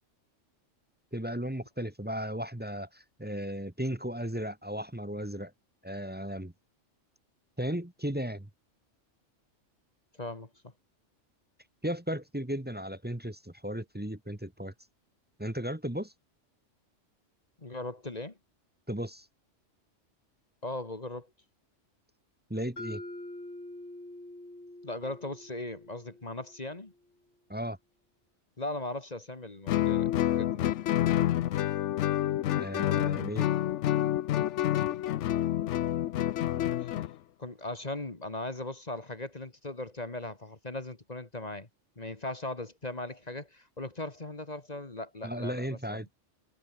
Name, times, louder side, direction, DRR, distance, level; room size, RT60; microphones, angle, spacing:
voice 1, 1.1-5.5 5.8-6.5 7.6-8.5 11.8-14.7 15.4-16.1 18.9-19.3 22.5-23.0 27.5-27.8 32.5-33.5 45.2-46.2, equal, 10° right, 1.1 m, -35 dB
voice 2, 10.2-10.5 17.6-18.4 20.6-21.3 24.8-26.9 28.6-30.6 36.8-37.0 37.4-41.7 42.0-46.0, left 2 dB, 35° left, 2.0 m, -38 dB
Mallet percussion, 22.8-26.8, left 1 dB, 60° left, 8.4 m, -45 dB
Guitar, 29.7-37.1, left 12 dB, 75° left, 0.9 m, -28 dB
omnidirectional pair, 1.3 m